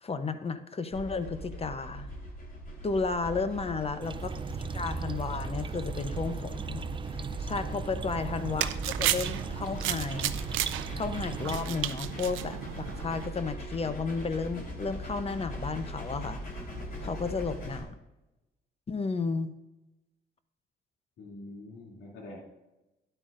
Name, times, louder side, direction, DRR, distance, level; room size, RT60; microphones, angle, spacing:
voice 1, 0.0-2.1 2.8-4.4 4.7-6.9 7.4-8.7 9.0-10.3 10.9-16.4 17.0-18.0 18.9-19.5, left 4 dB, 30° left, 11 dB, 0.8 m, -33 dB
sound 1, 0.9-17.8, equal, 50° left, 3.9 m, -40 dB
voice 2, 3.2-3.7 7.6-8.0 16.9-17.2 21.2-22.4, left 2 dB, 90° left, -3 dB, 2.7 m, -46 dB
sound 2, 4.0-11.6, right 5 dB, 25° right, 0.3 m, -37 dB
sound 3, 8.1-13.3, right 13 dB, 90° right, 0.6 m, -34 dB
12.5 x 10.0 x 2.6 m, 1.0 s
cardioid pair, 90°, 20 cm